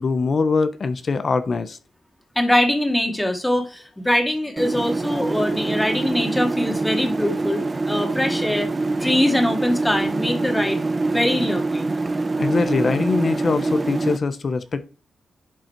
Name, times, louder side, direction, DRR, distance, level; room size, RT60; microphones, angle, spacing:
voice 1, 0.0-1.8 5.1-5.2 12.4-14.8, left 4 dB, 50° left, 0.9 m, -22 dB
voice 2, 2.4-8.7 9.0-10.8 11.1-11.9, left 1 dB, 10° left, 2.1 m, -22 dB
sound 1, 4.6-14.2, right 3 dB, 30° right, 0.8 m, -25 dB
11.0 x 3.9 x 4.5 m
cardioid pair, 75°, 0 cm